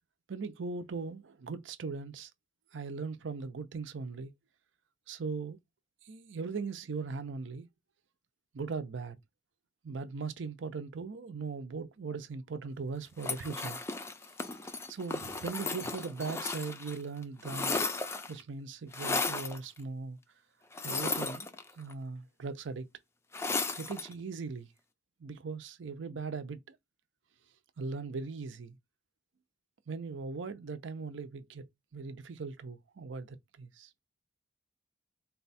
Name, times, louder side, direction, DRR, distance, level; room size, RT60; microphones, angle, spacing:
voice 1, 0.3-2.3 2.7-4.3 5.1-5.6 6.0-7.7 8.5-9.2 9.8-13.8 14.5-14.6 14.9-17.8 18.3-20.2 20.8-22.9 23.8-24.7 25.2-26.8 27.8-28.8 29.9-33.9, right 4 dB, 75° right, 0.6 m, -39 dB
sound 1, 13.2-17.0 17.2-18.4 18.9-19.6 20.7-21.9 23.3-24.1, left 3 dB, 15° left, 0.4 m, -35 dB
4.1 x 2.3 x 4.1 m
head